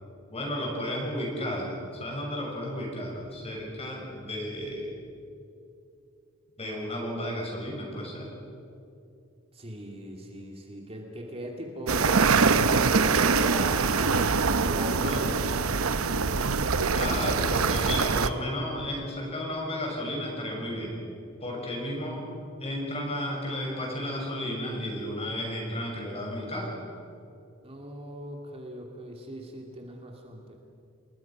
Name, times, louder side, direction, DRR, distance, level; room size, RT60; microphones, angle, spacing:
voice 1, 0.3-4.9 6.6-8.3 15.0-15.3 16.9-20.9 21.4-22.2 22.6-26.7, left 1 dB, 30° left, -1 dB, 6.5 m, -33 dB
voice 2, 9.5-14.1 14.6-15.4 15.9-16.3 17.9-18.0 27.6-30.5, right 1 dB, 30° right, 1 dB, 2.4 m, -39 dB
sound 1, 11.9-18.3, right 4 dB, 85° right, 0.9 m, -24 dB
29.5 x 20.5 x 6.0 m, 2.6 s
head